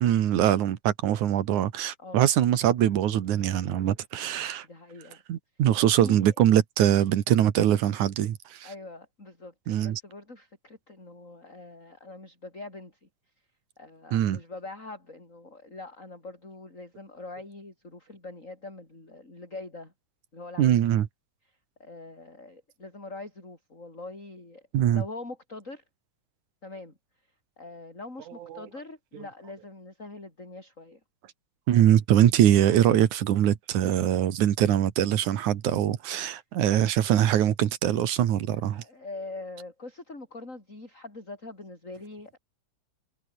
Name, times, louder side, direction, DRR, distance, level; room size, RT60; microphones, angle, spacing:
voice 1, 0.0-4.7 5.3-8.7 9.7-10.0 14.1-14.4 20.6-21.1 24.7-25.0 28.5-28.6 31.7-38.8, right 11 dB, 70° right, 2.8 m, -23 dB
voice 2, 4.6-5.2 5.7-6.3 8.6-13.1 13.8-19.9 20.3-20.8 21.4-25.8 26.6-27.0 27.6-31.0 37.9-38.0 38.7-42.4, left 2 dB, 20° left, 6.6 m, -43 dB
omnidirectional pair, 3.8 m